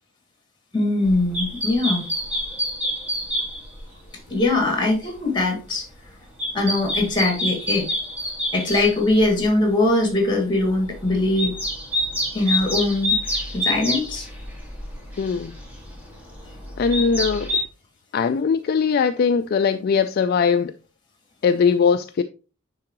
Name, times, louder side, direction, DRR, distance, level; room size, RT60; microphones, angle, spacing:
voice 1, 0.7-2.1 4.3-5.9 6.5-7.9 8.5-11.6 12.3-13.2 13.5-14.3, left 2 dB, 20° left, 2.2 m, -21 dB
sound 1, 1.0-3.9 4.3-5.0 5.5-9.5 9.9-10.1 10.6-17.6, left 1 dB, 5° right, 1.7 m, -28 dB
voice 2, 15.2-15.5 16.8-17.5 18.1-20.7 21.4-22.2, left 6 dB, 45° left, 0.3 m, -20 dB
9.5 x 3.8 x 3.0 m
head